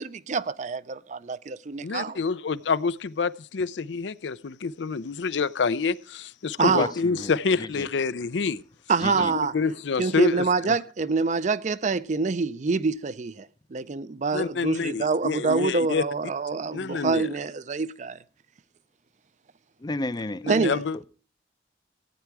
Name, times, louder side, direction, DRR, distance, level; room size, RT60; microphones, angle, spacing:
voice 1, 0.0-2.2 6.6-6.9 8.9-9.5 10.0-18.2 20.5-20.8, right 4 dB, 40° right, 0.5 m, -26 dB
voice 2, 1.8-8.6 9.1-9.2 9.5-10.8 14.3-16.0 16.7-17.3 20.4-21.0, left 5 dB, 80° left, 0.5 m, -27 dB
voice 3, 6.7-7.9 9.0-9.3 19.8-20.5 20.9-21.0, left 2 dB, 25° left, 0.5 m, -32 dB
15.0 x 9.3 x 4.7 m
head